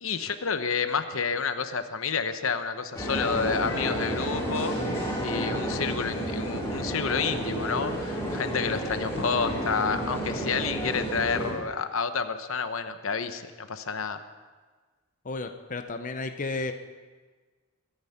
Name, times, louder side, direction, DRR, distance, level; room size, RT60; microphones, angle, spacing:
voice 1, 0.0-4.7 5.2-14.2, left 5 dB, 70° left, 9 dB, 0.9 m, -29 dB
sound 1, 2.9-11.5, equal, 15° left, 4.4 m, -31 dB
voice 2, 15.2-16.7, left 3 dB, 40° left, 7 dB, 0.8 m, -33 dB
22.5 x 10.5 x 5.8 m, 1.4 s
head